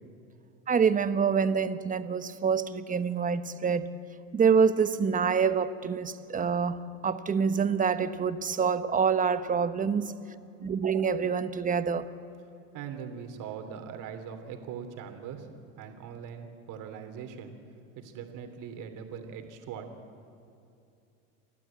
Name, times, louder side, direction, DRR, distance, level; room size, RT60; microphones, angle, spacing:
voice 1, 0.7-3.9 4.3-10.1 10.6-12.1, right 6 dB, 20° right, 12 dB, 1.1 m, -26 dB
voice 2, 12.7-15.5 15.8-17.5 17.9-19.9, right 7 dB, 55° right, 6 dB, 3.1 m, -41 dB
29.5 x 12.5 x 8.7 m, 2.6 s
supercardioid pair, 110°, 36 cm